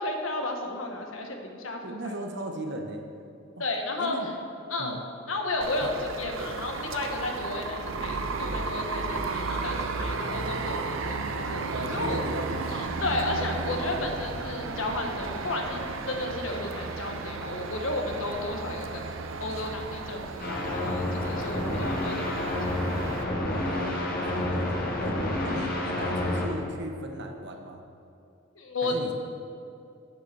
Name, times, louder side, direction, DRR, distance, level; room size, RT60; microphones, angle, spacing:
voice 1, 0.0-2.2 3.6-4.2 4.7-5.0 5.3-12.2 12.7-15.8 16.1-19.0 19.4-22.6 28.6-28.9, left 2 dB, 80° left, 2 dB, 1.2 m, -33 dB
voice 2, 1.8-3.0 3.6-3.7 4.0-4.3 4.8-5.0 5.8-5.9 11.7-13.0 23.5-27.8 28.8-29.1, right 1 dB, 60° right, 3 dB, 1.0 m, -37 dB
sound 1, 5.6-23.2, right 3 dB, 80° right, 0.7 m, -34 dB
sound 2, 20.4-26.4, left 1 dB, 50° left, 1.6 m, -29 dB
8.8 x 6.6 x 6.8 m, 2.6 s
head